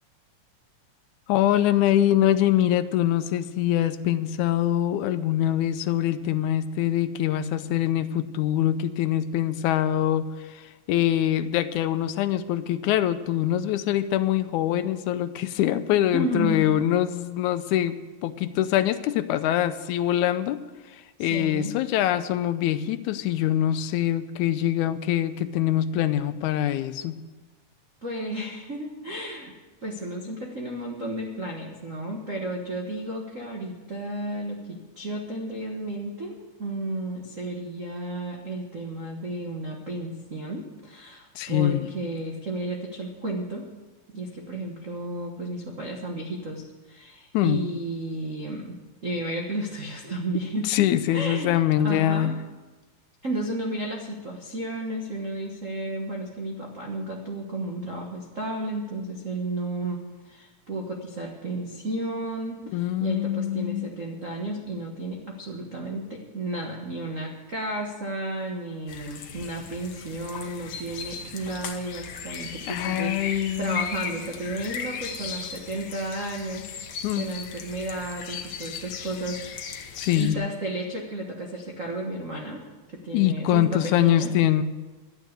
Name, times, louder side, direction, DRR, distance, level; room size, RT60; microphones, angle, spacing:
voice 1, 1.3-18.0 18.2-20.6 20.9-27.1 41.4-41.9 47.3-47.6 50.6-52.3 62.7-63.9 72.7-73.9 77.0-77.3 80.0-80.4 83.1-84.6, left 12 dB, 80° left, 11 dB, 1.9 m, -24 dB
voice 2, 16.1-16.6 21.2-21.7 28.0-29.5 29.8-43.6 44.1-50.7 51.1-51.5 51.8-52.3 53.2-79.4 80.1-82.6 82.9-84.3, right 1 dB, 85° right, 0 dB, 0.7 m, -33 dB
sound 1, 68.9-80.3, left 7 dB, 65° left, 1.5 m, -37 dB
12.0 x 9.3 x 7.9 m, 1.2 s
omnidirectional pair, 3.8 m